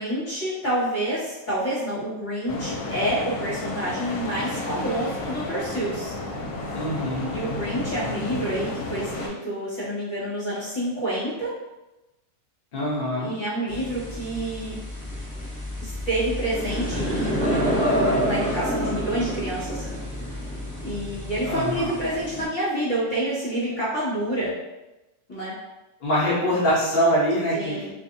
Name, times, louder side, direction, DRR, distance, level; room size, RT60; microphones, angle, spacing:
voice 1, 0.0-6.1 7.3-11.5 13.2-14.8 15.8-17.7 18.2-19.9 20.8-24.5 25.3-25.5 26.2-26.5 27.5-27.9, right 1 dB, 35° left, -8 dB, 1.2 m, -28 dB
sound 1, 2.5-9.3, left 2 dB, 75° left, 1.0 m, -32 dB
voice 2, 6.7-7.3 12.7-13.3 21.5-21.9 26.0-27.8, equal, 60° left, -7 dB, 0.5 m, -24 dB
sound 2, 13.7-22.4, equal, 10° left, 0.6 m, -28 dB
2.6 x 2.6 x 2.5 m, 1.0 s
omnidirectional pair, 1.6 m